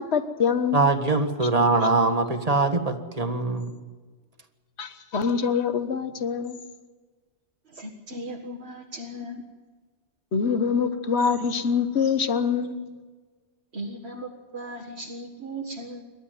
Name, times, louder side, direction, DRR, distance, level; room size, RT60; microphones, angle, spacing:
voice 1, 0.0-0.9 1.5-1.6 4.8-6.6 10.3-12.8, left 6 dB, 70° left, 11 dB, 1.5 m, -25 dB
voice 2, 0.7-3.7, right 3 dB, 35° right, 5 dB, 1.7 m, -22 dB
voice 3, 7.7-9.4 13.7-16.0, right 1 dB, 70° right, 1 dB, 2.1 m, -37 dB
28.0 x 12.5 x 9.3 m, 1.4 s
omnidirectional pair, 1.1 m